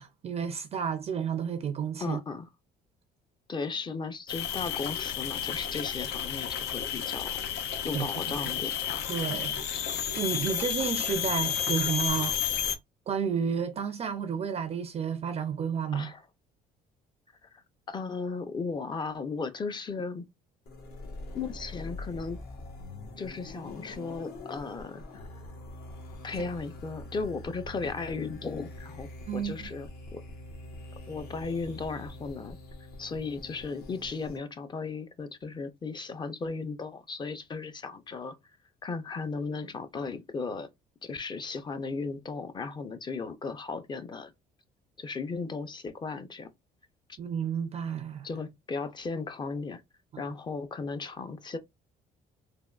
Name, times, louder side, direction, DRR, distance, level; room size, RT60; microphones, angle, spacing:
voice 1, 0.0-2.2 7.9-8.4 9.1-9.6 10.2-12.4 13.1-16.1 29.3-29.5 47.2-48.3 50.1-50.2, right 7 dB, 40° right, 0.4 m, -31 dB
voice 2, 2.0-2.5 3.5-7.4 7.8-8.7 15.9-16.2 17.5-20.3 21.3-22.4 23.2-25.3 26.2-30.2 31.1-32.6 33.0-38.4 38.8-40.7 41.0-44.3 45.0-46.5 47.1-47.2 48.2-49.8 50.2-51.6, left 4 dB, 25° left, 0.5 m, -36 dB
sound 1, 4.3-12.8, left 9 dB, 80° left, 0.5 m, -31 dB
sound 2, 20.7-34.4, left 2 dB, 65° left, 1.0 m, -44 dB
3.4 x 2.1 x 2.3 m
cardioid pair, 110°, 17 cm